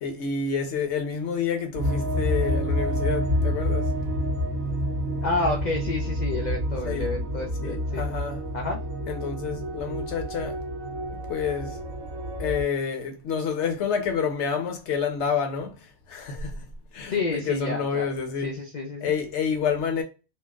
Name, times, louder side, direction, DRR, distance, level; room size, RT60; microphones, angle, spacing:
voice 1, 0.0-3.9 6.8-7.1 7.6-8.4 9.1-10.6 11.3-11.8 12.4-16.7 16.9-18.5 19.0-20.0, left 6 dB, 60° left, 1.0 m, -29 dB
sound 1, 1.7-12.6, equal, 85° right, 1.3 m, -28 dB
voice 2, 5.2-8.0 8.5-8.8 17.1-18.1 18.4-19.1, left 3 dB, 90° left, 0.4 m, -29 dB
4.4 x 2.0 x 2.3 m
omnidirectional pair, 1.4 m